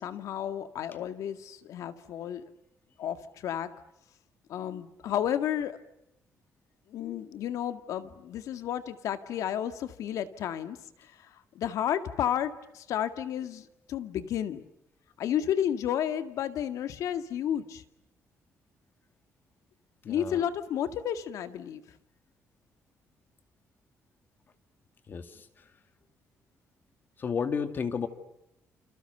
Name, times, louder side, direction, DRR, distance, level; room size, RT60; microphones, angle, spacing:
voice 1, 0.0-2.4 3.0-3.7 4.5-5.8 6.9-10.8 11.6-14.6 15.2-17.8 20.1-21.8, left 10 dB, 75° left, 10 dB, 2.0 m, -32 dB
voice 2, 20.0-20.5 25.1-25.7 27.2-28.1, left 6 dB, 40° left, 9 dB, 2.4 m, -33 dB
29.0 x 28.5 x 6.8 m, 0.83 s
cardioid pair, 155°, 6 cm